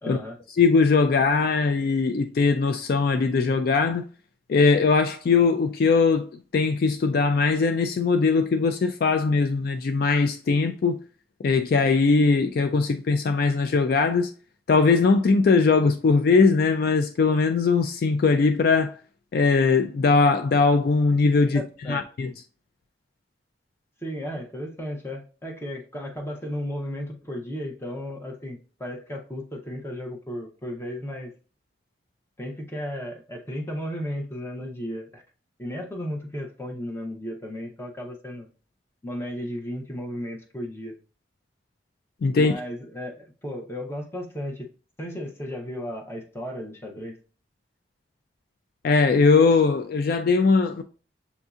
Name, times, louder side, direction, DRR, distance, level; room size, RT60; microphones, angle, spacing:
voice 1, 0.0-0.4 21.5-22.1 24.0-31.3 32.4-35.2 35.6-38.5 39.0-41.0 42.3-44.7 45.0-47.2, equal, 15° left, 0.8 m, -34 dB
voice 2, 0.6-4.0 4.5-6.3 6.5-11.0 11.4-14.3 14.7-18.9 19.3-21.6 21.9-22.3 42.2-42.5 48.8-50.8, left 4 dB, 55° left, 0.3 m, -20 dB
7.1 x 2.7 x 2.3 m
head